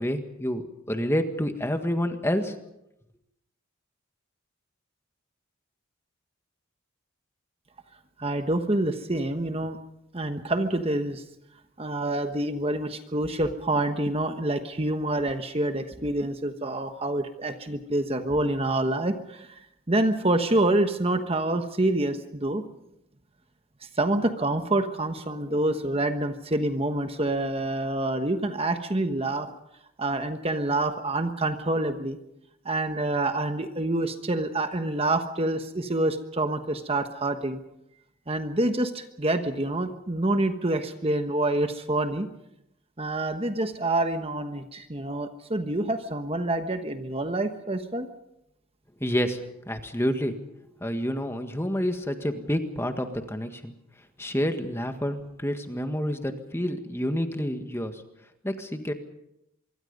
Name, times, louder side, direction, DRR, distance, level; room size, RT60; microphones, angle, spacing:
voice 1, 0.0-2.5 49.0-50.4 50.8-53.7 54.2-58.0 58.4-58.9, equal, 10° left, 6 dB, 1.7 m, -28 dB
voice 2, 8.2-9.8 10.1-11.2 11.8-19.6 19.9-22.6 24.0-29.5 30.0-32.2 32.6-37.6 38.3-42.3 43.0-48.1, right 2 dB, 25° right, 7 dB, 1.2 m, -27 dB
25.0 x 23.5 x 5.4 m, 0.82 s
head